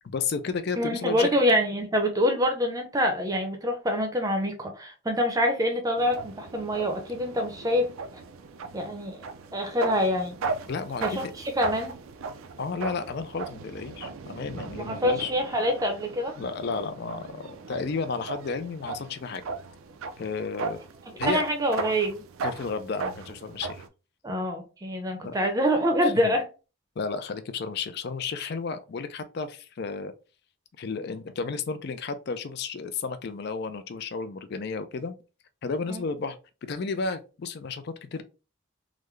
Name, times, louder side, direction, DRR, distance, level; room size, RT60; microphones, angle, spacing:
voice 1, 0.0-1.3 10.7-11.3 12.6-15.3 16.4-19.4 20.2-20.8 21.2-21.5 22.4-23.8 25.2-25.3 26.0-26.3 27.0-30.1 30.8-35.1 35.6-36.4 36.6-38.2, left 4 dB, 50° left, 0.4 m, -32 dB
voice 2, 0.8-7.9 8.7-9.2 9.5-10.4 11.0-11.2 11.6-11.9 14.7-16.4 21.3-22.2 24.2-26.4 35.9-36.0, equal, 15° right, 0.6 m, -25 dB
sound 1, 6.0-23.9, right 4 dB, 70° right, 0.4 m, -37 dB
3.7 x 2.1 x 3.1 m
head